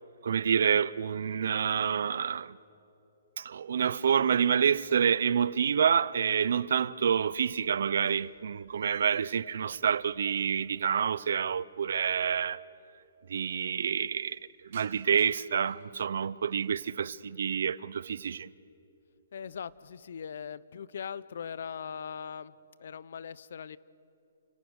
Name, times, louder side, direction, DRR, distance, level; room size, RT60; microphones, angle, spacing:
voice 1, 0.2-2.6 3.4-12.6 13.3-14.4 14.7-18.5, right 7 dB, 60° right, 0.5 m, -28 dB
sound 1, 5.9-6.4 6.7-10.8 11.1-11.2 12.1-12.2 12.3-12.4 12.7-13.2 13.6-16.8 17.2-17.7 18.2-18.6 19.0-19.9, right 8 dB, 40° right, 2.9 m, -60 dB
voice 2, 19.3-22.5 22.8-23.8, left 7 dB, 55° left, 0.7 m, -40 dB
29.5 x 24.0 x 6.4 m
hypercardioid pair, 170°, 0 cm